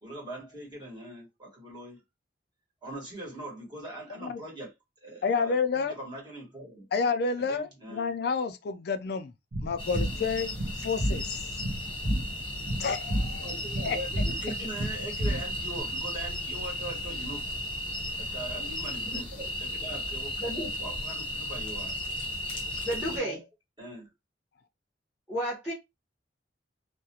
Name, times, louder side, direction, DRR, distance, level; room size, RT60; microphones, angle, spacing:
voice 1, 0.0-2.0 2.8-4.7 5.0-6.9 7.4-8.1 13.4-17.4 18.2-19.3 19.6-21.9 22.9-23.4 23.8-24.1, right 1 dB, 25° right, 1.2 m, -41 dB
voice 2, 5.2-5.9 6.9-9.3 9.6-10.6 10.8-11.5 12.8-13.5 13.8-14.0, left 5 dB, 60° left, 0.4 m, -29 dB
sound 1, 9.5-15.8, equal, 55° right, 0.6 m, -32 dB
sound 2, 9.8-23.2, left 1 dB, 30° left, 0.8 m, -35 dB
voice 3, 20.4-20.7 22.8-23.4 25.3-25.7, equal, 5° right, 1.0 m, -32 dB
2.4 x 2.1 x 2.7 m
head